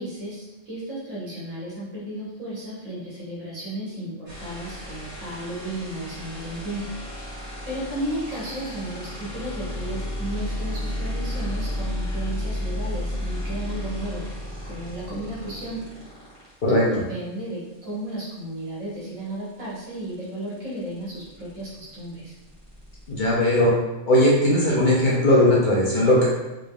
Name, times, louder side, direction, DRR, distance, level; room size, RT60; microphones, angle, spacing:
voice 1, 0.0-6.8 7.6-14.2 14.7-15.8 16.7-22.3, right 1 dB, 75° right, -8 dB, 1.9 m, -34 dB
sound 1, 4.3-16.5 18.6-18.7 19.0-23.3, left 1 dB, 25° right, 1.1 m, -33 dB
voice 2, 23.1-23.7 24.1-26.3, left 1 dB, 45° left, -6 dB, 0.8 m, -18 dB
3.7 x 3.4 x 2.3 m, 1.0 s
omnidirectional pair, 1.3 m